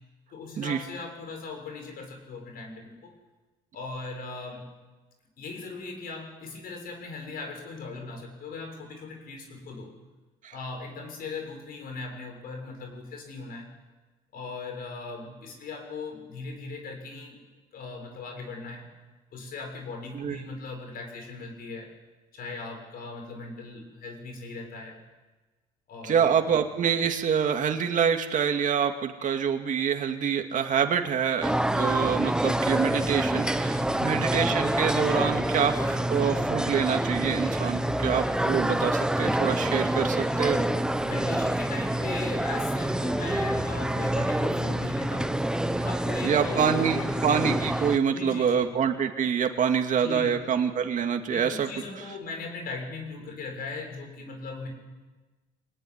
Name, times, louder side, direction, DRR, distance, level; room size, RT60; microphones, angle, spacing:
voice 1, 0.3-3.1 3.7-4.7 5.4-9.9 10.5-13.7 14.3-17.4 17.7-18.9 19.3-21.9 22.3-25.0 25.9-26.4 33.8-34.3 41.0-45.5 45.8-46.8 48.1-48.7 50.0-50.4 51.3-54.7, left 3 dB, 60° left, 3 dB, 7.1 m, -39 dB
voice 2, 26.0-40.7 46.2-51.7, right 7 dB, 50° right, 4 dB, 2.5 m, -26 dB
sound 1, 31.4-48.0, right 1 dB, 5° right, 1.1 m, -27 dB
24.0 x 19.5 x 9.7 m, 1.2 s
cardioid pair, 110°, 17 cm